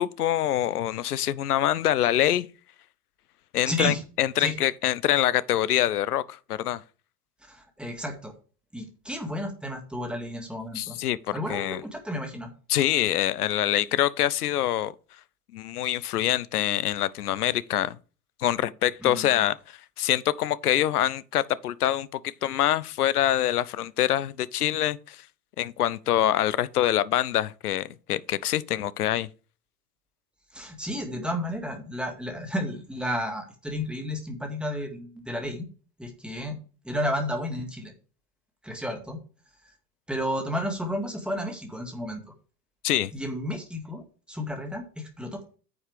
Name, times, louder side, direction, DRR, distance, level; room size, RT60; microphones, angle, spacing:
voice 1, 0.0-2.5 3.5-6.8 10.7-11.8 12.7-14.9 15.5-18.0 18.4-25.2 25.6-29.3 42.8-43.1, left 12 dB, 70° left, 0.7 m, -25 dB
voice 2, 3.7-4.0 4.4-4.5 7.5-8.3 8.7-11.0 11.3-12.5 19.0-19.5 30.5-35.6 36.0-36.6 36.8-37.9 38.6-39.2 40.1-42.3 43.1-44.0 44.3-45.4, equal, ahead, 2.1 m, -32 dB
9.7 x 7.1 x 3.4 m
figure-of-eight pair, 85°, 48 cm